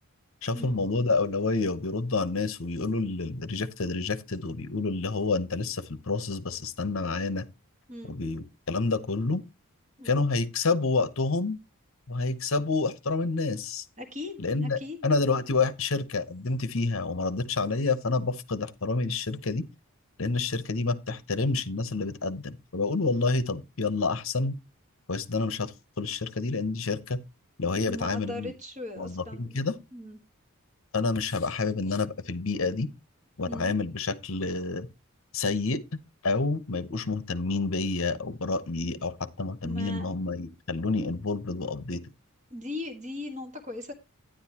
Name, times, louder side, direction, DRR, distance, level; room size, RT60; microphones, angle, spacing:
voice 1, 0.4-7.5 8.0-9.4 10.0-11.6 12.1-13.9 14.4-19.7 20.2-24.6 25.1-27.2 27.6-28.5 29.0-29.8 30.9-32.9 33.4-34.9 35.3-35.8 36.2-42.0, left 3 dB, 65° left, 0.9 m, -28 dB
voice 2, 14.0-15.1 27.9-29.6 29.9-30.2 33.5-33.7 39.6-40.1 42.5-43.9, left 2 dB, 30° right, 1.5 m, -39 dB
10.5 x 10.0 x 2.9 m
head